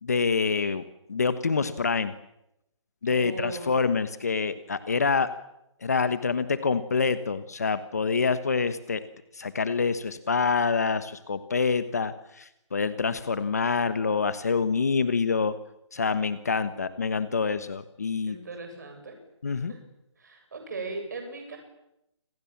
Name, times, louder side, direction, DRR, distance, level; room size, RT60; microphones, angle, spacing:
voice 1, 0.0-0.8 1.1-2.1 3.0-5.3 5.8-9.0 9.4-15.5 15.9-18.4 19.4-19.7, left 5 dB, 30° left, 12 dB, 1.3 m, -26 dB
voice 2, 3.0-3.7 18.2-19.2 19.7-19.8 20.2-21.6, right 3 dB, 35° right, 4 dB, 7.7 m, -38 dB
28.5 x 27.0 x 7.4 m, 0.86 s
hypercardioid pair, 180°, 16 cm